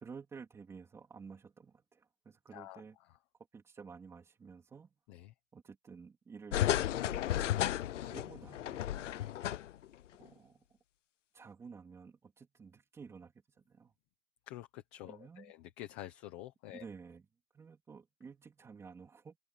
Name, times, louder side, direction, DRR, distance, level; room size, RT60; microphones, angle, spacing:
voice 1, 0.0-3.0 3.5-4.9 5.5-7.2 8.0-9.2 10.2-10.6 11.3-13.9 15.1-15.5 16.7-17.3 17.5-19.4, right 5 dB, 5° right, 3.6 m, -52 dB
voice 2, 2.5-2.8 5.1-5.3 14.5-16.8, left 14 dB, 10° left, 0.8 m, -48 dB
sound 1, 6.5-9.9 10.2-10.3, left 12 dB, 60° left, 0.6 m, -33 dB
open air
hypercardioid pair, 175°, 41 cm